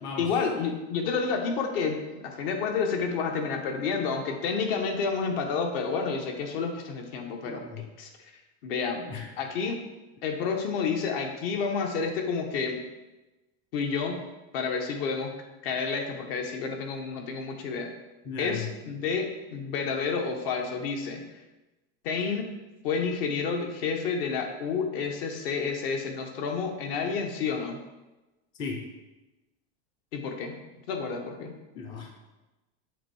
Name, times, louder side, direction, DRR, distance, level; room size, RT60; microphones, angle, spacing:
voice 1, 0.2-8.1 8.6-9.8 10.2-12.9 13.7-14.2 14.5-15.3 15.6-17.9 18.4-21.2 22.0-22.5 22.8-27.8 30.1-30.6 30.9-31.6, left 5 dB, 65° left, 3 dB, 1.0 m, -30 dB
voice 2, 7.4-7.9 9.1-9.3 18.2-18.7 28.6-28.8 31.7-32.1, left 5 dB, 15° left, 1 dB, 0.4 m, -36 dB
7.2 x 2.7 x 4.7 m, 1.1 s
supercardioid pair, 165°, 32 cm